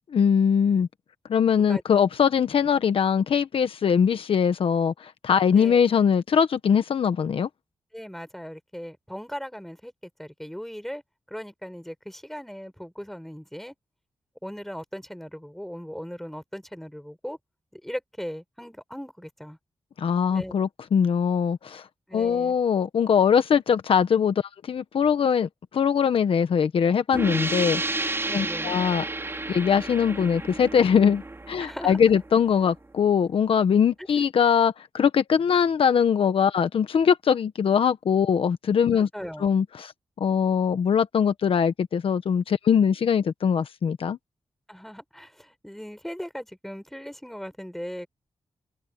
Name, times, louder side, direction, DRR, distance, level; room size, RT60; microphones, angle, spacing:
voice 1, 0.1-0.9 1.3-7.5 20.0-21.9 22.1-29.0 29.5-39.1 39.4-39.9 40.2-44.2, left 7 dB, 80° left, 1.2 m, -22 dB
voice 2, 7.9-9.9 10.2-11.0 11.3-13.7 14.4-17.4 17.7-19.6 20.3-20.5 22.1-22.6 28.2-28.7 31.6-32.0 38.9-39.5 44.7-48.1, equal, 5° left, 7.3 m, -38 dB
sound 1, 27.1-32.6, right 2 dB, 25° right, 3.4 m, -31 dB
cardioid pair, 75°, 9 cm